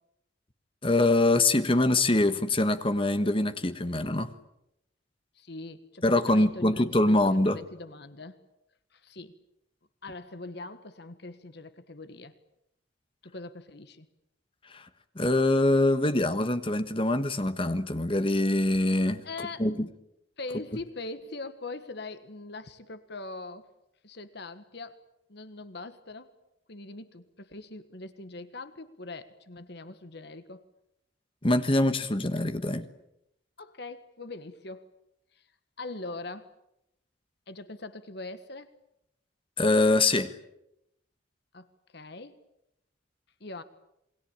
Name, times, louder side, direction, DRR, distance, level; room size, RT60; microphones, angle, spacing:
voice 1, 0.8-4.3 6.0-7.6 14.7-14.9 15.1-19.2 19.6-19.9 31.4-32.9 39.6-40.3, left 2 dB, 30° left, 11 dB, 1.4 m, -24 dB
voice 2, 5.3-8.4 8.9-9.3 10.0-12.3 13.2-14.1 19.2-19.7 20.4-23.7 24.0-25.0 25.3-26.3 26.7-30.6 33.6-34.8 35.3-35.4 35.8-36.5 37.5-38.7 41.5-41.7 41.9-42.4 43.4-43.6, left 3 dB, 60° left, 11 dB, 1.5 m, -42 dB
28.0 x 21.5 x 8.9 m, 0.83 s
head